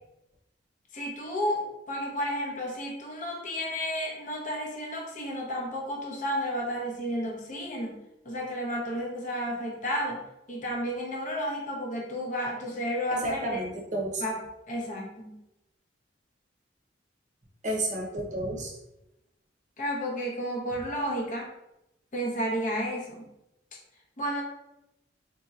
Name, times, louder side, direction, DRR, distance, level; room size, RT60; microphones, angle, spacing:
voice 1, 0.9-8.0 8.2-10.2 10.5-13.6 14.2-15.4 19.8-21.5 22.1-23.3 24.2-24.4, equal, 40° left, -1 dB, 0.8 m, -32 dB
voice 2, 13.1-14.2 17.6-18.7, right 1 dB, 40° right, -1 dB, 0.8 m, -31 dB
4.1 x 2.8 x 2.4 m, 0.88 s
head